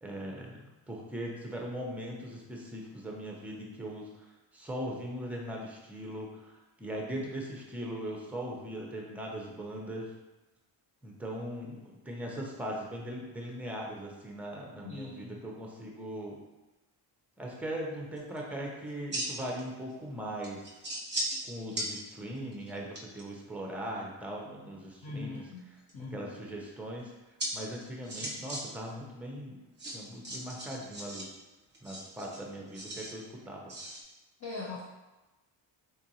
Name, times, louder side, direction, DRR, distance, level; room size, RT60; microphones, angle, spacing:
voice 1, 0.0-4.3 4.5-6.5 6.8-10.1 11.0-16.4 17.4-20.8 21.4-25.4 26.1-27.1 27.5-29.6 29.9-31.3 31.8-33.7, equal, 5° right, -1 dB, 0.5 m, -39 dB
voice 2, 14.8-15.4 25.0-25.6 25.9-26.3 34.4-34.8, left 3 dB, 35° left, -7 dB, 0.8 m, -40 dB
sound 1, 18.2-18.4 18.9-19.6 19.9-20.0 20.4-21.4 21.7-21.9 22.4-23.2 25.4-25.9 27.4-27.5 27.8-28.6 28.9-29.0 29.8-31.2 31.7-33.1 33.7-34.0, right 1 dB, 20° right, 0.8 m, -37 dB
3.8 x 2.5 x 2.8 m, 1.1 s
cardioid pair, 105°, 47 cm